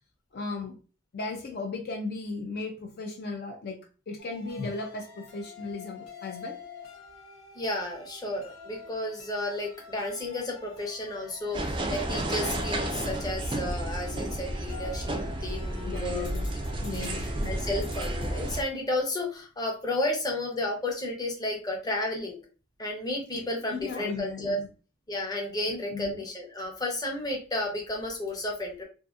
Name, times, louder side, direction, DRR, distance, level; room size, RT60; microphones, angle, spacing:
voice 1, 0.3-0.8 1.1-6.6 14.7-15.1 15.8-16.5 16.8-17.5 23.3-24.7 25.7-26.2, left 3 dB, 55° left, 2 dB, 0.4 m, -36 dB
sound 1, 4.2-18.4, left 2 dB, 85° left, 0.9 m, -44 dB
voice 2, 7.6-16.3 16.9-22.4 22.8-24.6 25.1-28.8, left 1 dB, 20° left, 0 dB, 0.7 m, -32 dB
sound 2, 11.5-18.6, right 1 dB, 25° right, 0.4 m, -32 dB
2.7 x 2.5 x 2.4 m, 0.35 s
head